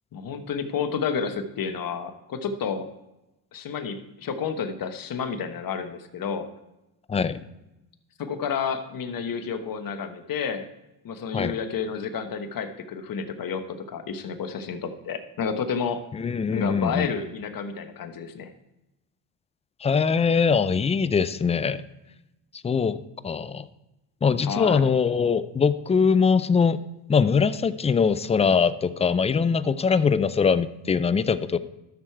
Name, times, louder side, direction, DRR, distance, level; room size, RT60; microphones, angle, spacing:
voice 1, 0.1-2.9 3.5-6.5 8.2-10.7 11.0-16.0 16.5-18.5 24.4-24.8, left 6 dB, 45° left, 8 dB, 1.2 m, -30 dB
voice 2, 7.1-7.4 11.3-11.5 16.1-17.1 19.8-21.8 22.6-23.0 23.2-23.7 24.2-26.8 27.1-31.6, left 5 dB, 15° left, 15 dB, 0.3 m, -22 dB
12.5 x 6.4 x 4.5 m, 0.94 s
supercardioid pair, 80°, 47 cm